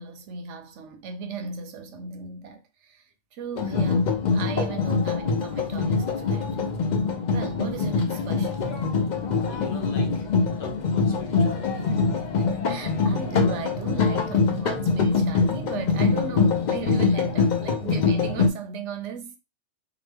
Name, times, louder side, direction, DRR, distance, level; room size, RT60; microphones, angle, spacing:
voice 1, 0.0-6.5 7.3-8.8 11.8-19.4, right 5 dB, 65° right, 0.8 m, -36 dB
sound 1, 3.6-18.5, left 4 dB, 70° left, 0.4 m, -24 dB
voice 2, 9.5-10.3 10.6-11.8, left 3 dB, 50° left, 0.7 m, -43 dB
2.9 x 2.1 x 3.3 m
omnidirectional pair, 1.4 m